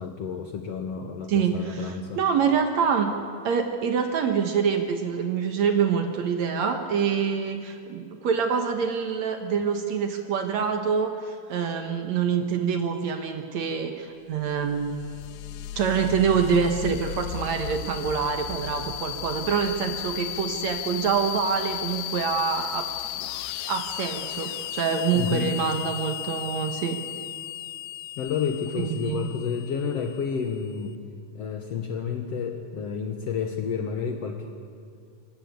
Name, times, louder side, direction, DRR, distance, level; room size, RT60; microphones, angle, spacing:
voice 1, 0.0-2.2 25.1-25.5 28.2-31.0 31.3-34.5, left 6 dB, 65° left, 5 dB, 1.7 m, -30 dB
voice 2, 1.3-3.2 3.4-15.0 15.8-22.9 23.7-27.0 28.8-29.3, right 6 dB, 60° right, 6 dB, 2.2 m, -26 dB
sound 1, 14.4-30.8, left 12 dB, 85° left, 2.5 m, -35 dB
24.5 x 13.5 x 9.5 m, 2.2 s
omnidirectional pair, 4.1 m